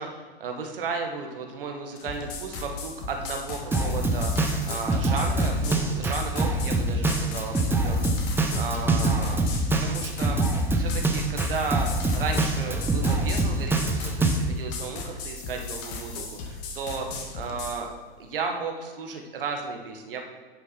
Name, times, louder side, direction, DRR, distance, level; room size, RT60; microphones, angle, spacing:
voice 1, 0.0-4.3 4.7-9.4 9.8-10.4 10.7-11.9 12.1-17.9 18.2-20.2, right 4 dB, 65° right, 3 dB, 1.5 m, -34 dB
sound 1, 2.0-17.8, left 4 dB, 45° left, 1.7 m, -37 dB
Drum kit, 3.7-14.4, right 2 dB, 5° right, 0.9 m, -25 dB
10.5 x 6.3 x 4.4 m, 1.4 s
figure-of-eight pair, 95°, 30 cm